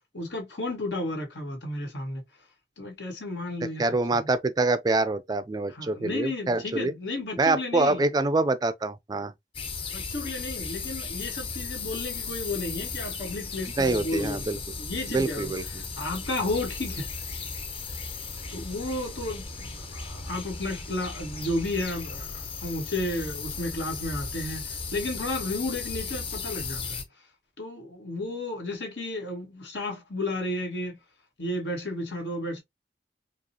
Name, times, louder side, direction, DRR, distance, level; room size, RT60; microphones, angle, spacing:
voice 1, 0.1-2.2 2.8-3.8 5.7-8.0 9.9-15.5 16.0-17.1 18.5-27.0 27.6-31.0 31.4-32.6, left 2 dB, 90° left, 1.6 m, -33 dB
voice 2, 3.8-6.9 7.4-9.3 13.8-14.6 15.1-15.6, right 2 dB, 20° right, 0.3 m, -25 dB
sound 1, 9.5-27.0, left 4 dB, 30° left, 0.6 m, -36 dB
4.8 x 2.3 x 2.7 m
head